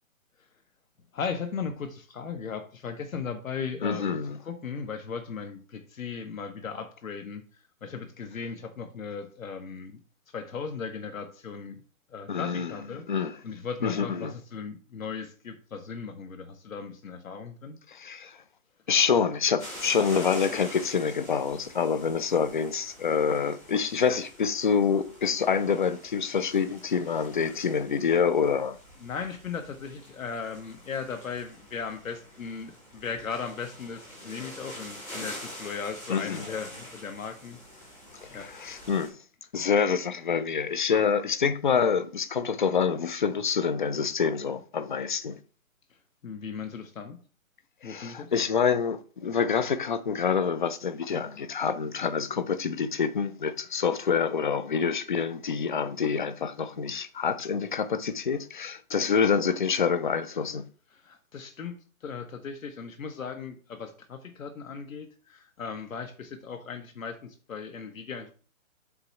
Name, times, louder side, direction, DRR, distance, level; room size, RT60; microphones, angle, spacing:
voice 1, 1.1-4.2 4.4-7.4 7.8-10.0 10.3-11.8 12.1-17.8 29.0-37.9 38.3-38.5 46.2-47.2 47.8-48.3 60.9-68.3, left 6 dB, 70° left, 1.2 m, -37 dB
voice 2, 3.8-4.4 12.3-12.7 13.1-13.3 13.8-14.3 17.9-18.4 18.9-28.8 36.1-36.4 38.4-39.1 39.5-45.4 47.8-60.6, left 6 dB, 35° left, 0.5 m, -26 dB
sound 1, 19.6-39.1, equal, 5° left, 0.7 m, -46 dB
7.8 x 3.1 x 5.7 m
hypercardioid pair, 160°, 42 cm